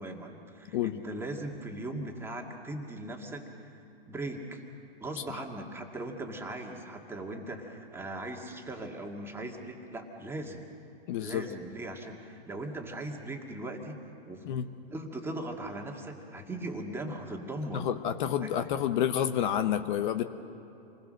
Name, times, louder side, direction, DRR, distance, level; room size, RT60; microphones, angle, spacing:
voice 1, 0.0-3.7 4.1-4.6 5.0-10.7 11.2-14.0 14.3-17.9 18.4-18.5, right 1 dB, 10° right, 1 dB, 2.0 m, -39 dB
voice 2, 11.1-11.5 14.5-14.7 17.7-20.2, left 10 dB, 50° left, 10 dB, 1.0 m, -29 dB
28.0 x 20.5 x 6.4 m, 2.9 s
hypercardioid pair, 135°, 31 cm